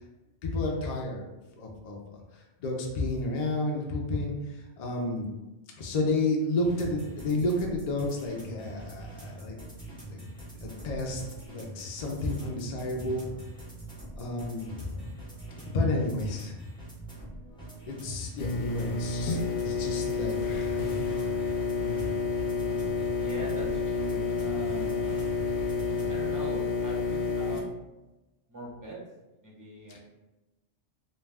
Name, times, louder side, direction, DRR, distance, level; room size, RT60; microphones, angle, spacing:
voice 1, 0.4-1.2 1.6-2.0 2.6-4.3 4.8-5.2 5.8-9.6 10.1-10.3 10.6-11.2 11.5-13.3 14.2-15.1 15.7-16.5 17.9-19.4 19.6-21.0 21.7-22.1, left 2 dB, 60° left, 0 dB, 0.4 m, -31 dB
sound 1, 6.6-26.2, right 1 dB, 5° left, 0.7 m, -44 dB
sound 2, 18.4-27.6, left 4 dB, 75° left, 0.9 m, -30 dB
voice 2, 21.8-22.2 23.2-25.3 26.1-27.7 28.5-29.0 29.4-30.0, right 1 dB, 25° right, -4 dB, 0.4 m, -42 dB
2.4 x 2.2 x 3.3 m, 1.0 s
omnidirectional pair, 1.2 m